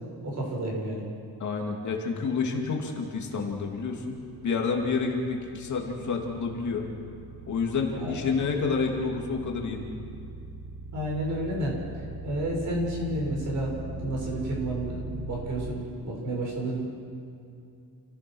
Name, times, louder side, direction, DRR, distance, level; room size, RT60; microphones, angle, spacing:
voice 1, 0.2-1.0 7.9-8.2 10.9-16.8, right 1 dB, 45° right, -2 dB, 6.8 m, -31 dB
voice 2, 1.4-4.2 4.4-6.8 7.5-9.8, left 4 dB, 45° left, 0 dB, 2.6 m, -29 dB
sound 1, 3.0-15.7, right 3 dB, 65° right, 2.2 m, -41 dB
29.0 x 16.5 x 6.4 m, 2.6 s
cardioid pair, 180°, 39 cm